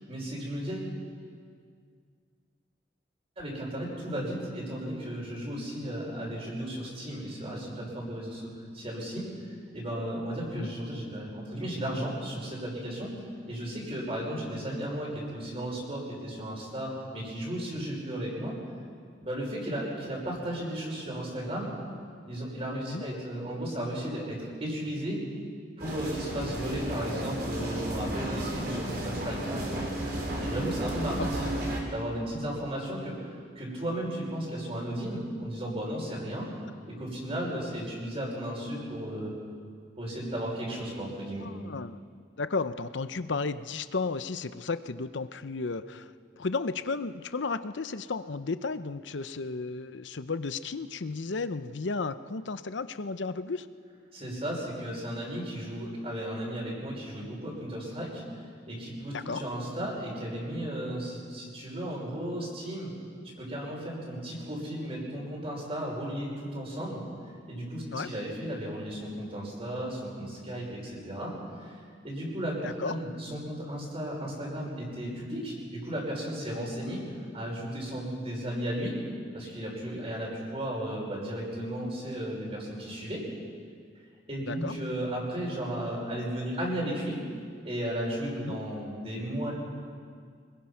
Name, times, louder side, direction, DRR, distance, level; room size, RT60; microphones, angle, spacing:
voice 1, 0.1-0.9 3.4-9.2 9.7-13.1 13.5-18.5 19.2-21.7 22.3-25.2 25.8-29.8 30.4-31.5 31.9-36.5 36.9-39.3 40.0-41.5 54.1-58.2 58.7-62.9 63.4-67.0 67.5-71.3 71.6-71.7 72.0-77.0 77.3-79.0 79.3-83.2 84.3-87.2 87.6-89.5, right 1 dB, 30° right, -2 dB, 5.7 m, -35 dB
sound 1, 25.8-31.8, right 1 dB, 55° right, 4.1 m, -33 dB
voice 2, 41.3-42.0 42.4-53.7 59.1-59.4 67.9-68.1 72.6-73.0 84.5-84.8 88.4-88.6, left 4 dB, 75° left, 12 dB, 0.7 m, -34 dB
24.5 x 21.0 x 5.8 m, 2.1 s
head